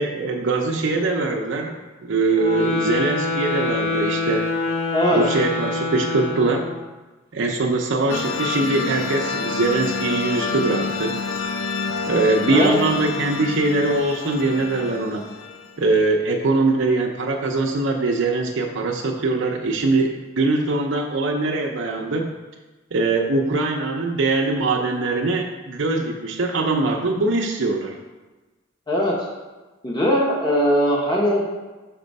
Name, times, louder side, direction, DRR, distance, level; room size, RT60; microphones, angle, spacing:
voice 1, 0.0-1.7 2.0-4.4 5.1-6.6 7.3-11.2 12.1-15.3 15.8-22.3 22.9-27.9, right 3 dB, 65° right, 1 dB, 0.6 m, -22 dB
sound 1, 2.3-6.8, left 3 dB, 65° left, 2.0 m, -25 dB
sound 2, 8.1-15.8, left 4 dB, 90° left, 0.5 m, -28 dB
voice 2, 12.5-12.8 28.9-29.2 29.8-31.4, equal, 20° left, -3 dB, 0.9 m, -20 dB
5.9 x 4.3 x 5.2 m, 1.2 s
head